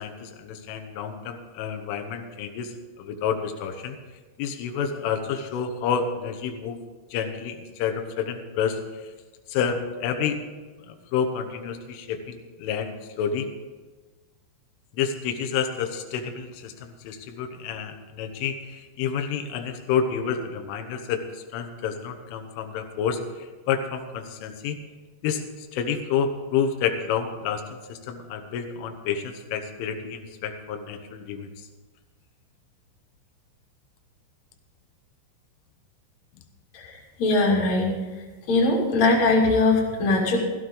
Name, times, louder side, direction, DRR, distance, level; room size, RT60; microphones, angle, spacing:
voice 1, 0.0-2.7 3.0-4.0 4.4-6.8 7.1-8.8 9.5-10.4 10.9-13.5 14.9-24.8 25.2-25.4 25.7-27.6 27.9-31.5, left 7 dB, 85° left, 6 dB, 3.6 m, -29 dB
voice 2, 36.7-37.9 38.5-40.4, left 2 dB, 40° left, -6 dB, 3.6 m, -21 dB
16.0 x 15.5 x 3.9 m, 1.3 s
omnidirectional pair, 5.6 m